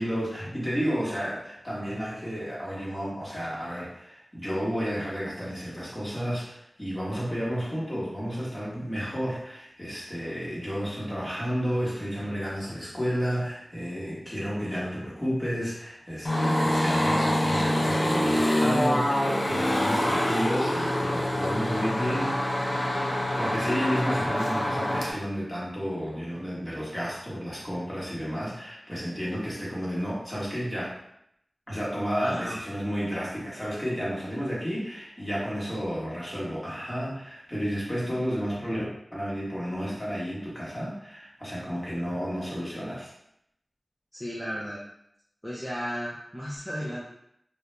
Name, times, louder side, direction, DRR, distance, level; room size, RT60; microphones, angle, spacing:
voice 1, 0.0-22.6 23.3-31.0 31.7-38.9 39.1-43.1, equal, 20° left, -7 dB, 1.1 m, -31 dB
Aeroplane Passing Close, 16.2-25.1, left 1 dB, 65° left, 0.5 m, -25 dB
voice 2, 32.2-32.6 44.1-44.8 45.4-47.0, equal, ahead, -7 dB, 0.5 m, -34 dB
2.3 x 2.1 x 3.0 m, 0.76 s
wide cardioid pair, 65°, 0 cm